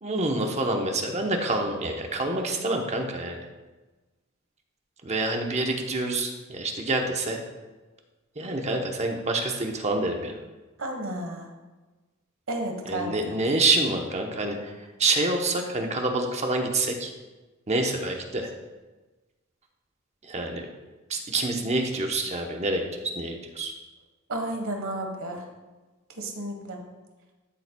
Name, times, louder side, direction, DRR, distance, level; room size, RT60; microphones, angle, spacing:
voice 1, 0.0-3.5 5.0-7.4 8.4-10.4 12.9-17.1 17.7-18.5 20.2-20.7 21.1-22.9 23.2-23.7, right 2 dB, 30° right, 3 dB, 0.9 m, -27 dB
voice 2, 10.8-11.5 12.5-13.1 24.3-25.4 26.1-26.8, right 1 dB, 65° right, 3 dB, 1.3 m, -32 dB
12.5 x 6.9 x 2.3 m, 1.2 s
head